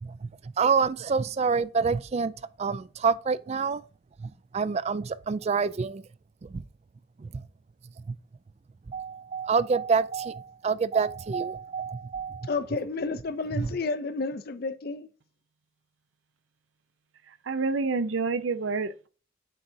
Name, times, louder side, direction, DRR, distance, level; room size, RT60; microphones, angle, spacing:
voice 1, 0.0-2.3 2.6-3.8 4.2-6.0 6.4-6.6 7.2-7.4 8.1-8.2 8.9-12.5 13.6-13.7, right 5 dB, 35° right, 0.3 m, -27 dB
voice 2, 12.5-15.1, left 3 dB, 50° left, 0.5 m, -31 dB
voice 3, 17.3-19.1, right 4 dB, 80° right, 0.6 m, -28 dB
7.9 x 4.6 x 2.7 m
head